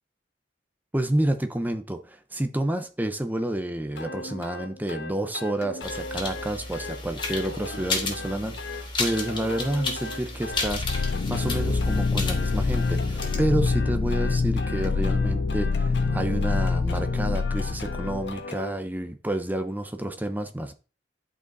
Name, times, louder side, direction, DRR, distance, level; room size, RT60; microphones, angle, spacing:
voice 1, 0.9-20.7, right 1 dB, 10° right, 0.8 m, -29 dB
sound 1, 4.0-18.7, left 3 dB, 75° left, 1.4 m, -38 dB
sound 2, 5.8-13.4, left 3 dB, 30° left, 2.2 m, -33 dB
sound 3, 10.5-18.4, left 4 dB, 50° left, 0.5 m, -26 dB
11.5 x 5.4 x 4.1 m
head